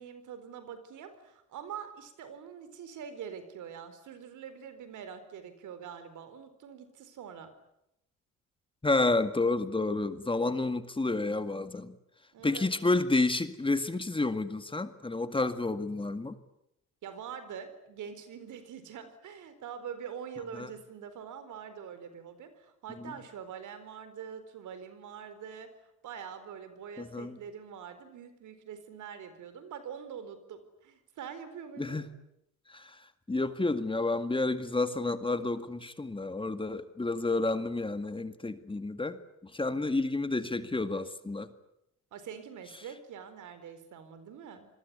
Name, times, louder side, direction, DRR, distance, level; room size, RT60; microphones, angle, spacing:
voice 1, 0.0-7.5 12.3-12.9 17.0-32.0 42.1-44.7, right 7 dB, 80° right, 11 dB, 4.3 m, -44 dB
voice 2, 8.8-11.9 12.4-16.4 20.5-20.7 22.9-23.2 27.0-27.4 31.8-32.1 32.7-33.0 33.3-39.2 39.5-41.5 42.7-42.9, left 2 dB, 15° left, 10 dB, 2.0 m, -30 dB
27.0 x 21.5 x 9.6 m, 0.83 s
cardioid pair, 90°, 30 cm